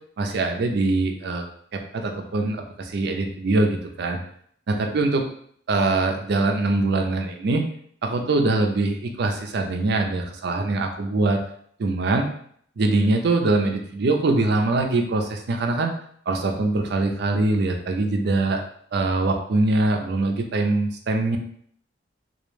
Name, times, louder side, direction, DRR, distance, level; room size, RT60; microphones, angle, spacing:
voice 1, 0.2-1.4 1.7-4.2 4.7-5.2 5.7-7.7 8.0-11.4 11.8-12.3 12.8-15.9 16.3-18.6 18.9-21.4, right 2 dB, 55° right, 4 dB, 0.4 m, -23 dB
2.3 x 2.1 x 3.1 m, 0.63 s
head